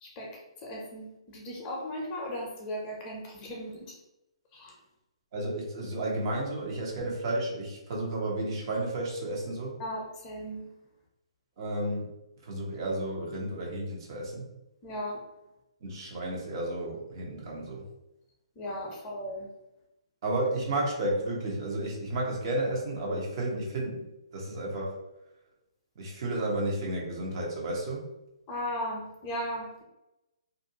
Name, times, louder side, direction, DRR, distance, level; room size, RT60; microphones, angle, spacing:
voice 1, 0.0-4.0 4.5-4.7 9.8-10.6 14.8-15.2 18.6-19.5 28.5-29.8, equal, 25° left, -1 dB, 0.7 m, -37 dB
voice 2, 5.3-9.7 11.6-12.1 12.4-14.5 15.8-17.8 20.2-25.0 26.0-28.1, right 1 dB, 45° right, -2 dB, 0.9 m, -32 dB
2.5 x 2.4 x 2.7 m, 0.93 s
hypercardioid pair, 140°, 3 cm